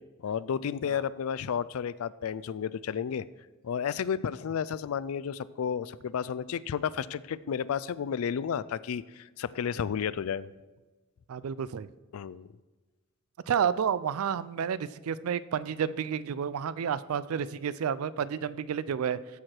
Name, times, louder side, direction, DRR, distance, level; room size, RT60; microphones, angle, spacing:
voice 1, 0.2-3.3 3.6-10.5 12.1-12.5, left 7 dB, 80° left, 18 dB, 0.4 m, -32 dB
voice 2, 11.3-11.9 13.5-19.2, right 7 dB, 80° right, 17 dB, 0.4 m, -30 dB
14.0 x 4.8 x 4.4 m, 1.2 s
head